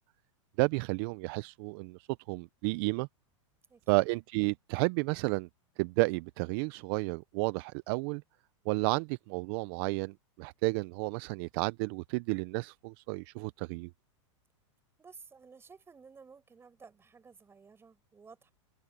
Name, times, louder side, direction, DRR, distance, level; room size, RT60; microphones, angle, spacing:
voice 1, 0.6-3.1 3.9-5.5 5.8-8.2 8.7-13.9, right 26 dB, 50° right, 0.6 m, -32 dB
voice 2, 3.7-4.0 15.0-18.5, right 5 dB, 15° right, 5.8 m, -55 dB
open air
hypercardioid pair, 130°, 16 cm